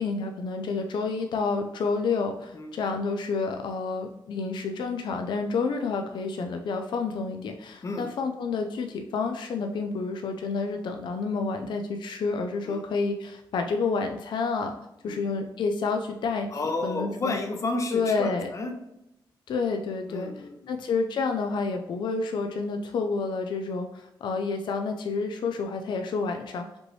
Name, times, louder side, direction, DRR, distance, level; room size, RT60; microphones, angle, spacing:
voice 1, 0.0-14.7 15.0-16.5 16.8-17.4 17.9-18.5 19.5-20.3 20.7-26.7, left 4 dB, 70° left, 5 dB, 0.4 m, -29 dB
voice 2, 16.5-18.7 20.1-20.8, left 2 dB, 40° left, 4 dB, 0.7 m, -31 dB
5.1 x 3.1 x 3.1 m, 0.88 s
wide cardioid pair, 125°, 8 cm